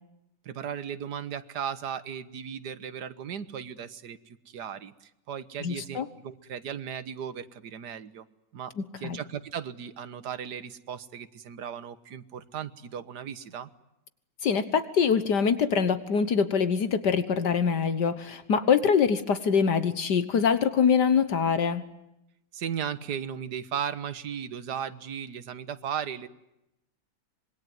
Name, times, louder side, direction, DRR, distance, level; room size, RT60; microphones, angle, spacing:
voice 1, 0.4-8.3 8.5-13.7 22.5-26.3, right 8 dB, 70° right, 13 dB, 1.8 m, -36 dB
voice 2, 5.6-6.1 8.8-9.2 14.4-21.9, left 6 dB, 70° left, 13 dB, 1.9 m, -24 dB
26.0 x 22.0 x 9.4 m, 0.87 s
omnidirectional pair, 1.9 m